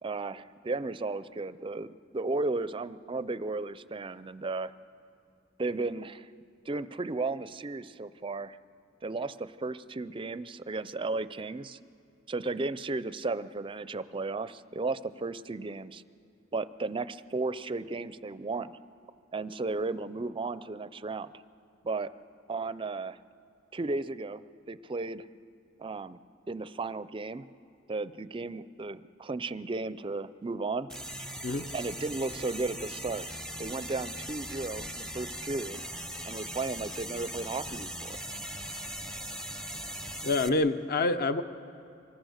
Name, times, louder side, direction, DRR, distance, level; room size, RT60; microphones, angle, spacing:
voice 1, 0.0-4.7 5.6-6.3 6.7-8.6 9.0-11.8 12.3-16.0 16.5-18.8 19.3-21.3 21.8-22.1 22.5-23.2 23.7-24.4 24.7-25.3 25.8-26.2 26.5-27.5 27.9-30.9 31.7-33.3 33.6-35.8 36.3-38.2, right 3 dB, 25° right, 15 dB, 0.4 m, -34 dB
sound 1, 30.9-40.5, equal, 5° left, 0.7 m, -39 dB
voice 2, 40.2-41.4, left 2 dB, 50° left, 10 dB, 0.9 m, -27 dB
25.5 x 21.0 x 6.5 m, 2.6 s
head